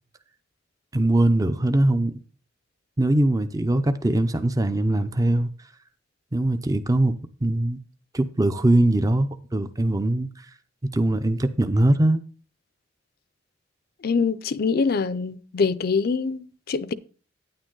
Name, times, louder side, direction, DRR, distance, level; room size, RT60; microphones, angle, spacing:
voice 1, 0.9-2.2 3.0-5.5 6.3-7.8 8.1-10.5 10.9-12.2, right 1 dB, 20° right, 0.5 m, -21 dB
voice 2, 14.0-16.9, left 5 dB, 55° left, 0.5 m, -24 dB
9.6 x 8.9 x 3.8 m
head